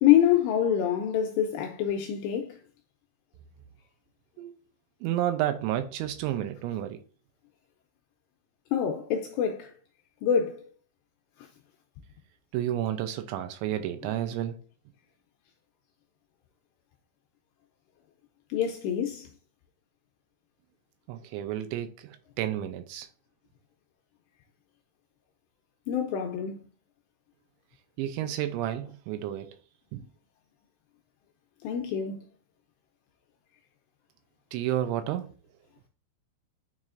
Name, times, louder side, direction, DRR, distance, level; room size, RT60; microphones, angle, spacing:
voice 1, 0.0-2.6 8.7-9.7 10.2-10.6 18.5-19.3 25.9-26.6 31.6-32.2, left 9 dB, 80° left, 2.5 m, -26 dB
voice 2, 5.0-7.0 12.5-14.6 21.1-23.1 28.0-29.6 29.9-30.1 34.5-35.3, right 12 dB, 80° right, 2.8 m, -31 dB
9.4 x 4.8 x 2.5 m
omnidirectional pair, 5.6 m